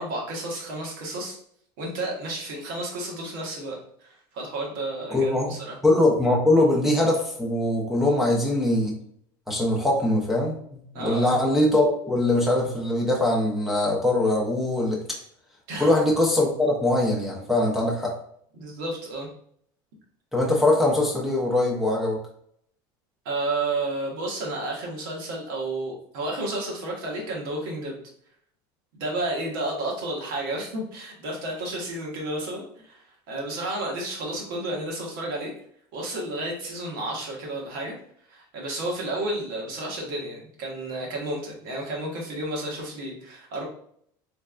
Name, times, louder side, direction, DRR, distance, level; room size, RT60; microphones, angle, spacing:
voice 1, 0.0-1.4 1.8-5.8 10.9-11.4 15.7-15.9 18.6-19.3 23.2-27.9 28.9-35.5 35.9-37.9 38.3-43.6, right 2 dB, 75° right, -2 dB, 1.3 m, -31 dB
voice 2, 5.1-5.5 5.8-9.0 9.5-15.2 15.8-18.1 20.3-22.2, left 1 dB, 5° right, -2 dB, 0.6 m, -22 dB
3.3 x 3.3 x 2.4 m, 0.65 s
cardioid pair, 155°, 11 cm